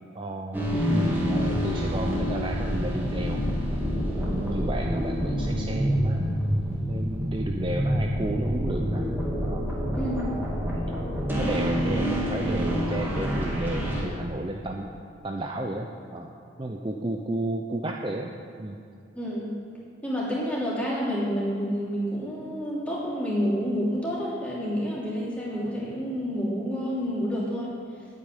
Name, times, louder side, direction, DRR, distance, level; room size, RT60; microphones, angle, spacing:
voice 1, 0.1-3.4 4.0-9.1 9.4-9.7 10.7-11.0 11.4-14.9 15.2-16.3 16.6-18.3 18.6-18.8, right 1 dB, 25° right, 1 dB, 0.6 m, -32 dB
sound 1, 0.5-14.0, equal, 10° right, 2.6 m, -27 dB
voice 2, 9.9-10.3 19.1-19.5 20.0-27.7, equal, 5° left, -6 dB, 3.0 m, -29 dB
9.0 x 8.6 x 9.6 m, 2.5 s
head